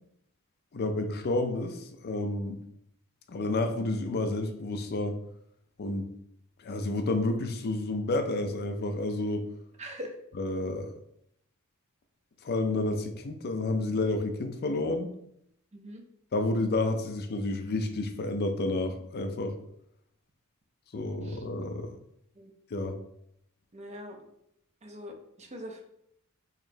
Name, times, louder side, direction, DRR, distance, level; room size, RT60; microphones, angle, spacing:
voice 1, 0.7-2.6 3.3-5.2 5.8-6.1 6.6-9.5 10.4-10.9 12.4-15.1 16.3-19.6 20.9-22.0 22.7-23.0, left 2 dB, 50° left, 6 dB, 0.4 m, -30 dB
voice 2, 9.8-10.2 15.7-16.0 21.2-21.4 22.3-22.5 23.7-24.2 24.8-25.8, equal, 30° right, 3 dB, 0.6 m, -42 dB
4.1 x 2.9 x 2.7 m, 0.75 s
head